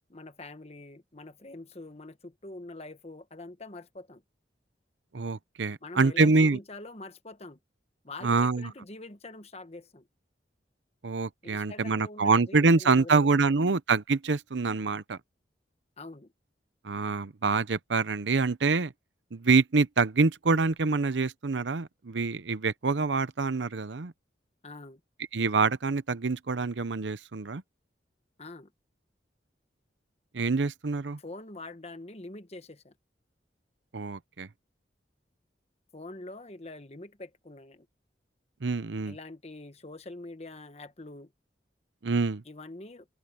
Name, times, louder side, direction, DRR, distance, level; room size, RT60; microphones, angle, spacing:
voice 1, 0.1-4.2 5.8-7.6 8.0-10.1 11.4-13.3 13.6-13.7 16.0-16.3 24.6-25.0 28.4-28.7 31.2-32.9 35.9-37.9 39.1-41.3 42.4-43.1, left 2 dB, 35° left, 1.3 m, -44 dB
voice 2, 5.1-6.6 8.2-8.7 11.0-15.2 16.8-18.9 19.3-24.1 25.3-27.6 30.3-31.2 33.9-34.5 38.6-39.1 42.0-42.4, right 4 dB, 85° right, 0.8 m, -26 dB
open air
head